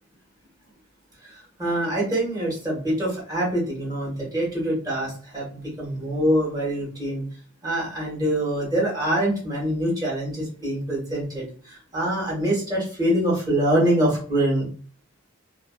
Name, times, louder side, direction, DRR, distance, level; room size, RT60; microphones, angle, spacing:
voice 1, 1.2-7.2 7.6-14.7, right 1 dB, 20° right, -5 dB, 1.1 m, -25 dB
2.5 x 2.4 x 2.2 m, 0.42 s
head